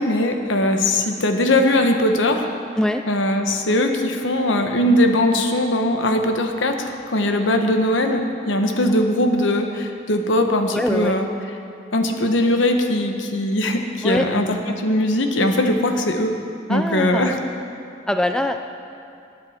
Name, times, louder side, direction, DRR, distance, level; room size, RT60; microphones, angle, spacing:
voice 1, 0.0-2.5 3.1-11.3 11.9-16.3 16.7-17.4, left 1 dB, 85° left, 5 dB, 1.1 m, -20 dB
voice 2, 10.7-11.2 14.0-14.3 16.7-17.3 18.1-18.6, left 1 dB, 5° left, 6 dB, 0.3 m, -22 dB
19.0 x 8.9 x 4.3 m, 2.5 s
head